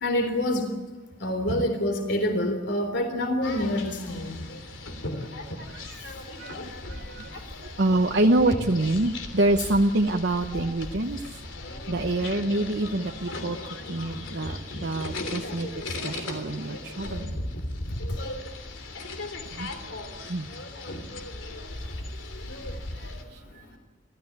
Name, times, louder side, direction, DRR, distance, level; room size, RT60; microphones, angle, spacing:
voice 1, 0.0-0.6 1.2-4.3, left 1 dB, 65° left, 6 dB, 3.6 m, -26 dB
sound 1, 3.4-23.2, left 2 dB, 85° left, 3.3 m, -37 dB
voice 2, 5.6-7.4 7.8-11.2 11.9-13.6 13.9-15.7 16.0-17.4 19.5-19.9 20.2-20.5 23.0-23.8, right 2 dB, 60° right, 4 dB, 1.0 m, -26 dB
28.5 x 14.0 x 8.8 m, 1.2 s
head